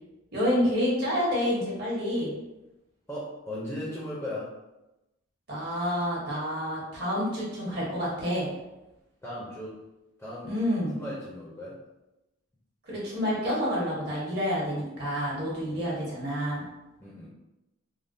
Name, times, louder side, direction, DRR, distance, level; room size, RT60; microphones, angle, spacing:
voice 1, 0.3-2.3 5.5-8.5 10.4-10.9 12.8-16.6, equal, 50° right, -6 dB, 1.1 m, -28 dB
voice 2, 3.1-4.5 9.2-9.8 10.2-10.6 10.9-11.8 17.0-17.3, left 1 dB, 10° left, -7 dB, 0.5 m, -37 dB
3.4 x 2.2 x 2.6 m, 0.98 s
head